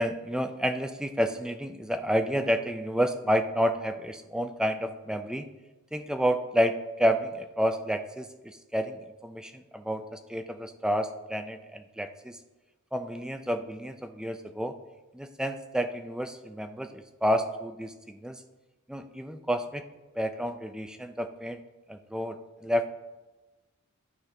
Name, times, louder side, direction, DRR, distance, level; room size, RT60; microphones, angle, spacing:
voice 1, 0.0-5.5 5.9-12.4 12.9-14.8 15.1-18.4 18.9-19.8 20.1-21.6 21.9-22.9, equal, 5° right, 7 dB, 0.4 m, -30 dB
12.0 x 4.3 x 3.3 m, 1.2 s
head